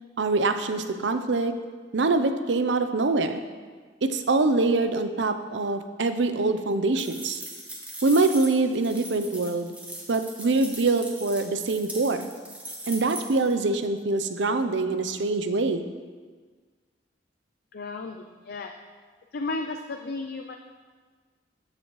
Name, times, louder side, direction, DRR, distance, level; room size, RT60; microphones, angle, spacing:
voice 1, 0.2-1.5 1.9-3.4 4.0-7.4 8.0-9.7 10.1-12.3 12.9-15.9, right 3 dB, 70° right, 9 dB, 0.6 m, -24 dB
sound 1, 7.0-13.5, right 1 dB, 10° right, 1.4 m, -40 dB
voice 2, 17.7-18.8 19.3-20.6, left 3 dB, 55° left, 4 dB, 0.5 m, -34 dB
13.0 x 7.4 x 3.1 m, 1.5 s
head